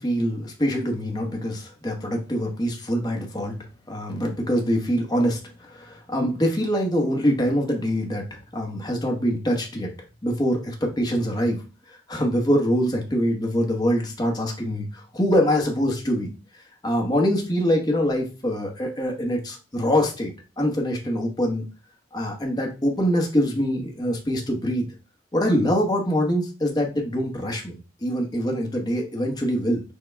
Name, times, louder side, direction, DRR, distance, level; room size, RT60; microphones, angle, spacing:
voice 1, 0.0-3.5 3.9-9.9 10.2-11.6 11.9-16.3 16.8-21.7 22.1-24.9 25.3-29.8, equal, 20° left, 0 dB, 1.0 m, -24 dB
6.4 x 2.2 x 3.3 m, 0.32 s
head